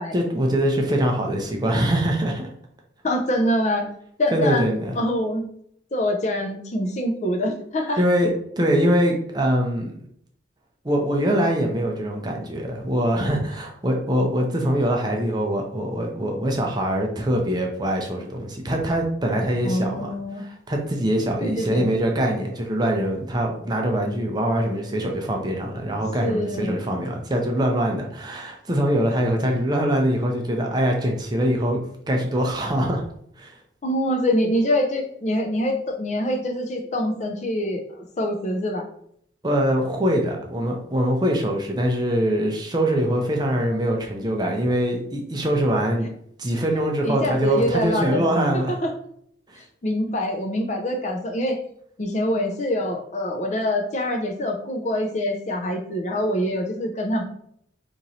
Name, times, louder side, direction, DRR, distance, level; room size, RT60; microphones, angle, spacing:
voice 1, 0.1-2.5 4.3-4.9 8.0-9.9 10.8-31.8 32.1-33.0 33.4-33.6 39.4-46.1 46.4-48.8 49.5-49.6, equal, 20° right, 1 dB, 0.5 m, -23 dB
voice 2, 3.0-3.9 4.2-4.6 5.0-5.4 5.9-8.0 19.6-20.4 21.4-21.9 26.2-26.8 33.8-37.8 38.2-38.9 47.0-48.2 48.7-48.9 49.8-51.6 52.0-57.2, left 1 dB, 40° left, 3 dB, 0.4 m, -24 dB
3.0 x 2.6 x 4.0 m, 0.67 s
head